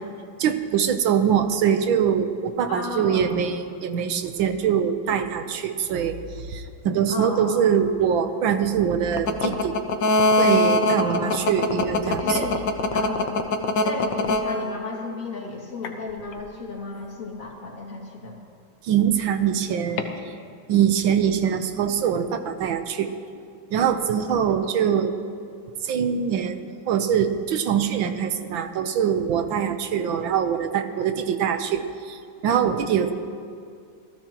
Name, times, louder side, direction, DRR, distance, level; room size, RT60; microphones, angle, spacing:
voice 1, 0.4-9.7 10.4-12.5 18.9-20.0 20.7-23.1 23.7-25.1 25.9-32.2 32.4-33.1, right 8 dB, 75° right, 8 dB, 1.6 m, -23 dB
voice 2, 2.7-3.3 7.1-7.6 11.0-11.5 12.2-12.7 12.9-13.4 13.8-18.4 24.3-24.8, left 3 dB, 40° left, -2 dB, 2.6 m, -34 dB
sound 1, 9.1-15.1 15.8-16.4 20.0-20.1, left 2 dB, 65° left, 1.6 m, -21 dB
26.0 x 17.5 x 3.0 m, 2.2 s
omnidirectional pair, 2.2 m